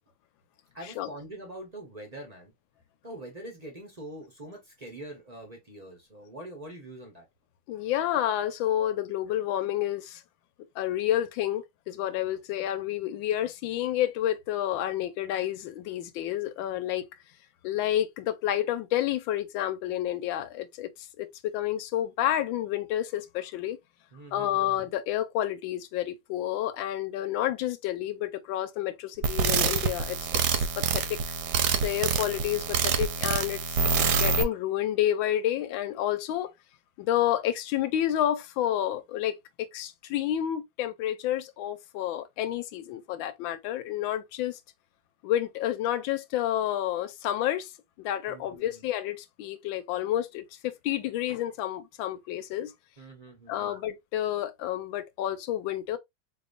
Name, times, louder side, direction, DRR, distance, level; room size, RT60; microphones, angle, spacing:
voice 1, 0.7-2.5 3.0-7.2 24.1-24.7 48.3-48.9 53.0-53.8, right 1 dB, 50° right, 0.4 m, -44 dB
voice 2, 7.7-10.2 10.8-17.1 17.6-20.9 21.2-23.8 24.3-31.2 31.8-36.5 37.0-44.6 45.2-47.7 48.0-52.7 53.5-56.0, left 12 dB, 80° left, 1.3 m, -30 dB
sound 1, 29.2-34.4, right 5 dB, 70° right, 1.0 m, -26 dB
4.1 x 2.9 x 2.4 m
omnidirectional pair, 2.1 m